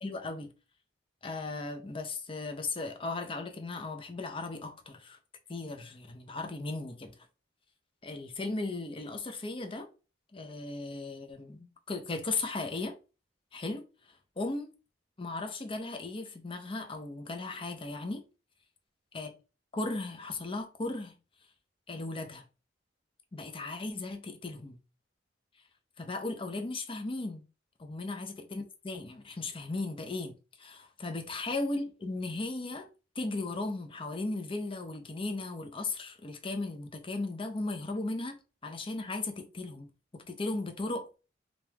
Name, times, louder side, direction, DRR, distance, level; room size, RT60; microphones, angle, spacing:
voice 1, 0.0-0.5 1.2-5.2 5.5-7.1 8.0-9.9 10.3-13.0 13.5-13.8 14.4-14.7 15.2-18.2 19.1-19.3 19.7-21.1 21.9-22.4 23.3-24.8 26.0-27.4 27.8-32.9 33.2-38.4 38.6-41.1, left 2 dB, 30° left, 0.6 m, -36 dB
3.4 x 2.4 x 2.9 m
head